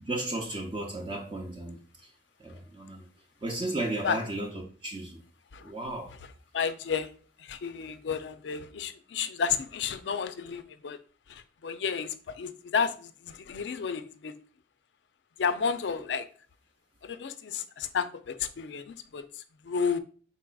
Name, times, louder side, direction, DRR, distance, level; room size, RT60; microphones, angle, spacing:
voice 1, 0.0-2.1 2.4-3.1 3.4-5.2 5.6-6.1, right 2 dB, 30° right, 0.5 m, -34 dB
voice 2, 6.5-7.1 7.4-11.0 11.3-14.3 15.4-16.3 17.0-20.0, left 6 dB, 85° left, 0.4 m, -32 dB
4.7 x 4.0 x 2.2 m
head